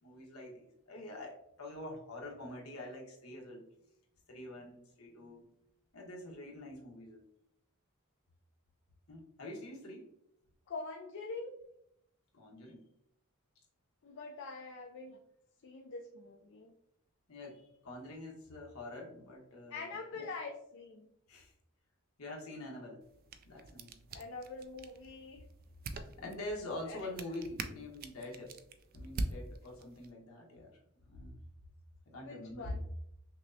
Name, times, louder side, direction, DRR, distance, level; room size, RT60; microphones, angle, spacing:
voice 1, 0.0-3.6 4.3-5.4 5.9-7.2 9.1-10.1 12.3-12.9 17.3-20.3 21.3-21.5 22.2-23.0 23.4-24.0 26.2-28.5 28.9-30.7 31.0-31.4 32.1-32.8, left 1 dB, 75° left, -1 dB, 1.0 m, -45 dB
voice 2, 10.7-11.5 14.0-15.2 15.6-16.7 19.7-21.1 24.1-25.4 26.9-27.1 32.2-32.8, left 3 dB, 60° left, 1 dB, 0.4 m, -44 dB
sound 1, 23.0-30.1, right 2 dB, 45° right, 0.3 m, -45 dB
5.8 x 2.0 x 2.7 m, 0.77 s
head